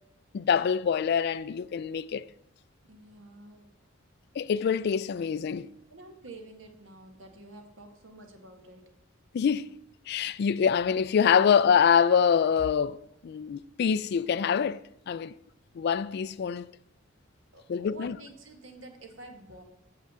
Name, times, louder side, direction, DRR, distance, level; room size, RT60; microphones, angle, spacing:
voice 1, 0.3-2.2 4.4-5.7 9.3-9.7 10.1-15.3 15.8-16.7 17.7-18.2, left 7 dB, 55° left, 0.3 m, -25 dB
voice 2, 2.8-3.7 5.9-8.8 15.2-15.3 17.5-19.6, right 2 dB, 75° right, 1.5 m, -49 dB
6.6 x 5.8 x 7.4 m
head